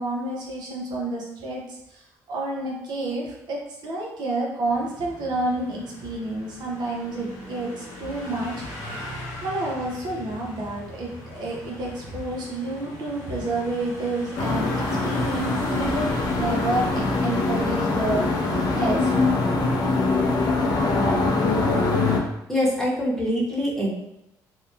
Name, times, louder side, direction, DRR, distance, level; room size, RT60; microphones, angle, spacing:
voice 1, 0.0-8.9 9.4-16.1 16.4-18.4 18.7-19.5, right 2 dB, 60° right, -2 dB, 0.6 m, -29 dB
sound 1, 4.6-21.2, left 1 dB, 85° left, 0.8 m, -39 dB
sound 2, 14.4-22.2, left 3 dB, 55° left, 0.5 m, -23 dB
voice 2, 22.5-23.9, equal, 5° left, -6 dB, 0.9 m, -24 dB
2.7 x 2.1 x 2.4 m, 0.85 s
supercardioid pair, 70°, 8 cm